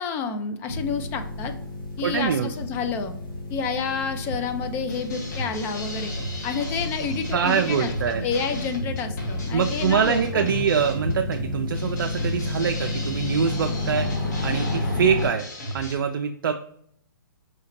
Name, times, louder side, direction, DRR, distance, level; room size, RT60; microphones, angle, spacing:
voice 1, 0.0-1.6 2.0-3.1 3.5-6.1 6.4-10.5, left 5 dB, 20° left, 8 dB, 0.3 m, -29 dB
sound 1, 0.7-15.3, left 2 dB, 75° left, 1.5 m, -31 dB
voice 2, 2.0-2.5 7.3-8.2 9.5-15.4 15.7-16.5, right 7 dB, 70° right, 5 dB, 0.4 m, -24 dB
sound 2, 4.9-16.0, equal, 50° left, 1.5 m, -35 dB
5.0 x 2.7 x 2.9 m, 0.68 s
hypercardioid pair, 145°, 12 cm